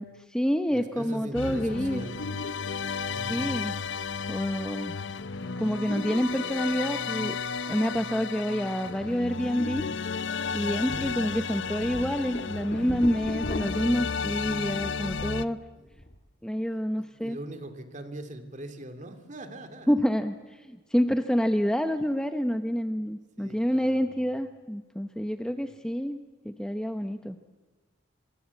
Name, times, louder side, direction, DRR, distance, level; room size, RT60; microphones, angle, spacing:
voice 1, 0.0-2.0 3.3-3.8 4.3-4.9 5.6-7.4 7.6-9.8 10.5-15.6 16.4-17.4 19.9-26.2 26.4-27.4, equal, 5° left, 7 dB, 0.8 m, -28 dB
voice 2, 0.7-2.2 3.1-3.5 10.8-11.1 15.5-16.0 17.0-20.0 23.4-24.3, right 1 dB, 40° right, 8 dB, 2.6 m, -42 dB
sound 1, 1.3-15.4, left 5 dB, 65° left, 0.8 m, -33 dB
sound 2, 9.8-9.9 10.2-10.3 10.9-11.1 11.6-15.4 15.7-16.2, left 1 dB, 40° left, 2.6 m, -39 dB
25.0 x 25.0 x 8.4 m, 1.3 s
head